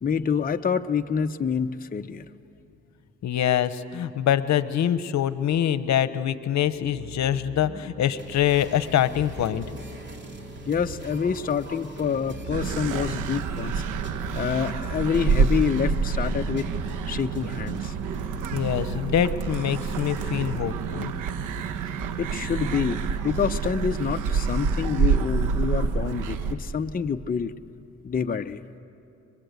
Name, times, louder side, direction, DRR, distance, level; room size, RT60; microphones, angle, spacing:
voice 1, 0.0-2.3 10.6-13.8 14.3-16.7 17.1-17.9 22.2-27.5 28.0-28.6, left 6 dB, 30° left, 6 dB, 0.8 m, -27 dB
voice 2, 3.2-9.6 18.5-21.1, left 10 dB, 65° left, 13 dB, 1.0 m, -24 dB
sound 1, 6.5-23.6, right 1 dB, 60° right, 7.3 m, -44 dB
sound 2, 8.2-18.2, right 2 dB, 35° right, 3.2 m, -43 dB
sound 3, 12.5-26.5, right 5 dB, 90° right, 1.3 m, -27 dB
30.0 x 23.5 x 8.2 m, 2.7 s
cardioid pair, 90°, 30 cm